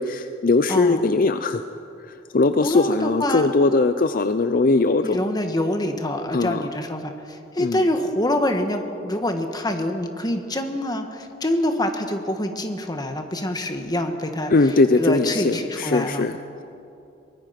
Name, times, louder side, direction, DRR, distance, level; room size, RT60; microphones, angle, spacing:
voice 1, 0.0-1.6 2.0-5.2 6.3-6.6 7.6-7.8 14.5-16.3, left 3 dB, 50° left, 10 dB, 0.6 m, -20 dB
voice 2, 0.7-1.1 2.6-3.5 5.0-14.5 15.0-16.2, left 1 dB, 20° left, 5 dB, 1.7 m, -25 dB
23.5 x 20.0 x 5.9 m, 2.8 s
head